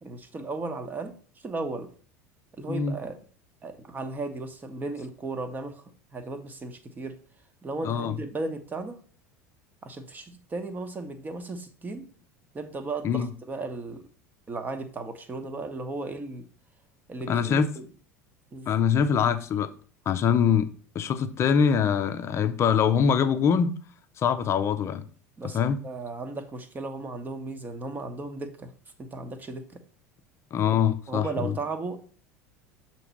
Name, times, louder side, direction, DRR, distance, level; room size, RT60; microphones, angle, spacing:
voice 1, 0.0-1.1 1.4-1.9 2.5-3.2 3.6-5.8 6.1-7.2 7.6-9.0 9.8-12.1 12.5-14.1 14.5-16.5 17.1-17.8 18.5-18.7 25.4-28.7 29.0-29.8 30.7-32.0, right 3 dB, 20° right, 1.0 m, -35 dB
voice 2, 7.8-8.2 13.0-13.3 17.3-17.7 18.7-19.7 20.1-20.7 20.9-23.7 24.2-25.0 25.5-25.8 30.5-31.6, left 7 dB, 35° left, 0.6 m, -23 dB
7.0 x 3.0 x 5.7 m
figure-of-eight pair, 75°, 8 cm